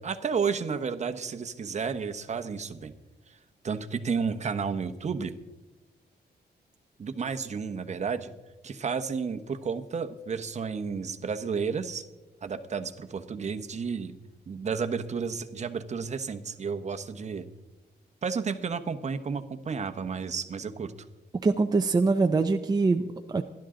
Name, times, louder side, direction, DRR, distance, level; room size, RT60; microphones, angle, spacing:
voice 1, 0.0-2.9 3.6-5.3 7.0-8.3 8.6-12.0 12.4-14.1 14.5-17.5 18.2-20.9, right 5 dB, 40° right, 9 dB, 1.0 m, -32 dB
voice 2, 21.4-23.4, right 3 dB, 25° right, 5 dB, 0.6 m, -24 dB
28.0 x 11.5 x 3.8 m, 1.1 s
wide cardioid pair, 145°, 17 cm